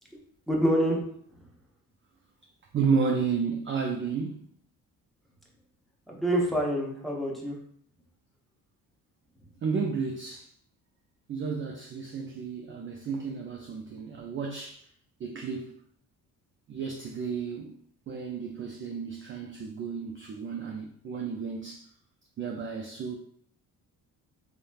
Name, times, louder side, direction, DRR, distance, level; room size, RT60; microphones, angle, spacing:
voice 1, 0.5-1.0 6.1-7.6, equal, ahead, 0.8 m, -26 dB
voice 2, 2.7-4.4 9.6-10.5 11.3-14.8 15.2-15.8 16.7-17.7 18.1-21.9 22.4-23.1, right 5 dB, 30° right, 0.4 m, -32 dB
3.0 x 2.1 x 2.3 m
hypercardioid pair, 55°, 41 cm